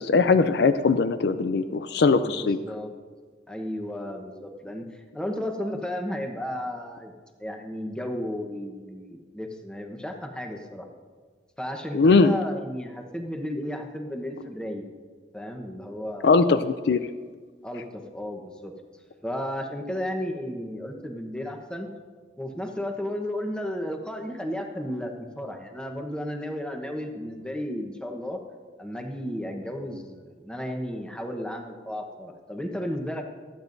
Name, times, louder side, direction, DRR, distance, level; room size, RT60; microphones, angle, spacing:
voice 1, 0.0-2.6 11.9-12.3 16.2-17.0, left 4 dB, 65° left, 11 dB, 0.4 m, -20 dB
voice 2, 2.2-2.9 3.5-7.1 7.4-10.9 11.6-14.8 15.3-16.4 17.6-18.7 19.2-21.9 22.4-28.4 28.8-33.2, left 1 dB, 5° left, 3 dB, 1.0 m, -33 dB
25.0 x 9.0 x 2.7 m, 1.5 s
head